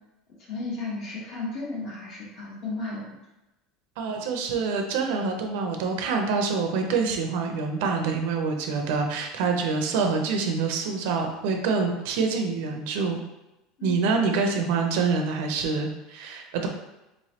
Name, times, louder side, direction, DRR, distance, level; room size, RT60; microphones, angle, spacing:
voice 1, 0.5-3.2 13.8-14.1, left 3 dB, 40° left, -5 dB, 1.3 m, -34 dB
voice 2, 4.0-13.2 13.8-16.7, right 4 dB, 70° right, 3 dB, 0.6 m, -26 dB
4.3 x 3.1 x 2.9 m, 0.96 s
cardioid pair, 175°, 0 cm